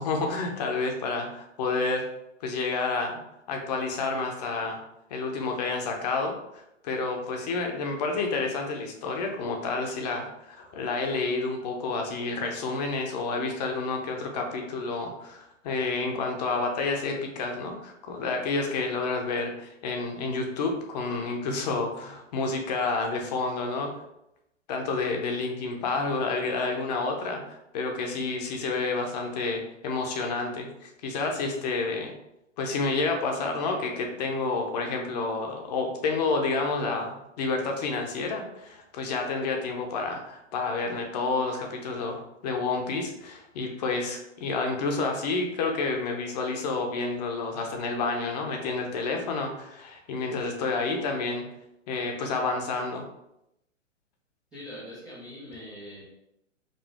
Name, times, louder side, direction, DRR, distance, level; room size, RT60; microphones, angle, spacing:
voice 1, 0.0-2.0 2.4-3.2 3.5-4.8 5.1-6.3 6.8-23.9 24.7-32.1 32.6-51.4 51.9-53.0, left 3 dB, 35° left, 3 dB, 0.7 m, -29 dB
voice 2, 54.5-56.0, left 1 dB, 5° right, -14 dB, 0.4 m, -42 dB
5.1 x 2.4 x 3.5 m, 0.83 s
hypercardioid pair, 140°, 37 cm